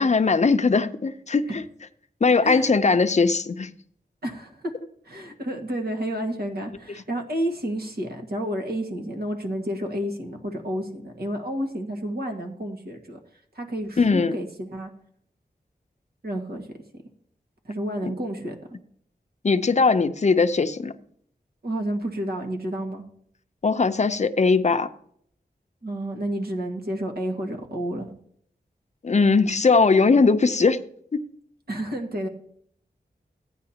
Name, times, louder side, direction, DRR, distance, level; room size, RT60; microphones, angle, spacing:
voice 1, 0.0-1.6 2.2-3.7 14.0-14.4 19.4-20.9 23.6-24.9 29.0-30.8, left 4 dB, 45° left, 0.6 m, -20 dB
voice 2, 4.2-4.7 5.0-13.2 13.5-14.9 16.2-16.7 17.6-18.5 21.6-23.0 25.8-28.1 31.7-32.3, equal, 70° right, 1.8 m, -30 dB
15.0 x 9.6 x 2.9 m
wide cardioid pair, 90°, 17 cm